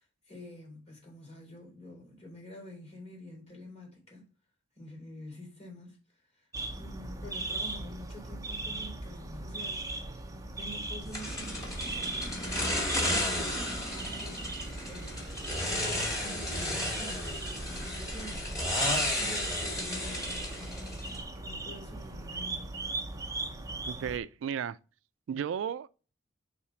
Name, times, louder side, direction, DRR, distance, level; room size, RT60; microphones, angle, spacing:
voice 1, 0.0-4.3 4.7-6.5 6.8-10.2 10.6-14.5 14.8-15.2 15.5-22.8, left 1 dB, 35° left, 3.2 m, -48 dB
sound 1, 6.5-24.2, right 2 dB, 20° right, 0.8 m, -39 dB
sound 2, 11.1-21.2, left 1 dB, 20° left, 2.1 m, -33 dB
voice 2, 23.8-24.8 25.3-25.9, right 8 dB, 70° right, 0.3 m, -34 dB
4.8 x 4.3 x 5.7 m
head